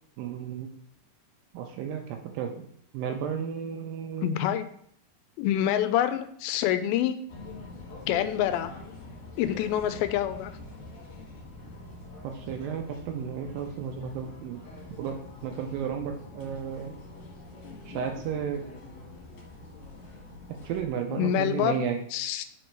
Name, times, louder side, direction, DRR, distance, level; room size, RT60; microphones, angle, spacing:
voice 1, 0.2-0.7 1.5-2.7 2.9-4.4 12.2-14.6 15.0-16.9 17.9-18.6 20.6-22.0, right 7 dB, 80° right, 3 dB, 2.2 m, -33 dB
voice 2, 4.2-4.6 5.4-7.2 8.1-8.7 9.4-10.5 21.1-22.5, left 11 dB, 85° left, 10 dB, 2.4 m, -26 dB
sound 1, 7.3-20.9, left 2 dB, 50° left, 2.1 m, -45 dB
5.4 x 5.0 x 4.5 m, 0.66 s
omnidirectional pair, 4.4 m